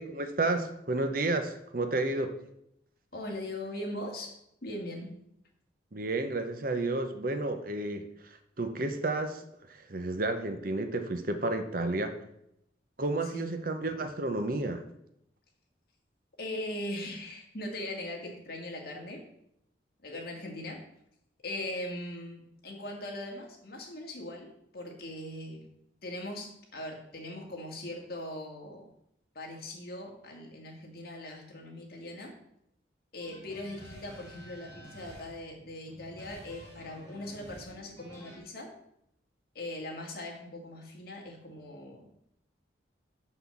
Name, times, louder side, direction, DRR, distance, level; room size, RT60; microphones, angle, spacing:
voice 1, 0.0-2.3 5.9-9.4 9.7-12.2 13.0-14.8, right 2 dB, 50° right, 8 dB, 0.8 m, -31 dB
voice 2, 3.1-4.4 4.6-5.1 13.2-13.5 16.4-19.2 20.0-20.8 21.4-25.7 26.0-28.9 29.3-32.3 33.1-38.7 39.5-42.1, left 1 dB, 55° left, 0 dB, 2.1 m, -40 dB
sound 1, 33.2-38.4, equal, 15° left, 2.8 m, -50 dB
6.0 x 5.9 x 7.2 m, 0.77 s
head